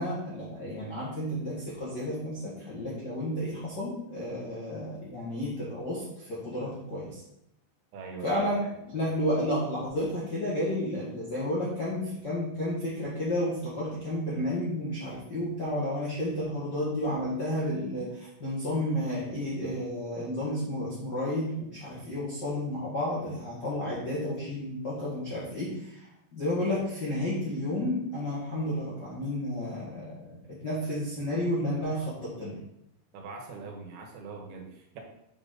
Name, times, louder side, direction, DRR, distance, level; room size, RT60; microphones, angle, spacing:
voice 1, 0.0-7.2 8.2-8.6 8.9-26.0 26.3-30.0 30.6-32.5, left 1 dB, 50° left, -8 dB, 1.2 m, -31 dB
voice 2, 7.9-8.8 33.1-35.0, right 4 dB, 80° right, 1 dB, 3.0 m, -42 dB
7.2 x 5.2 x 3.9 m, 0.78 s
omnidirectional pair, 4.5 m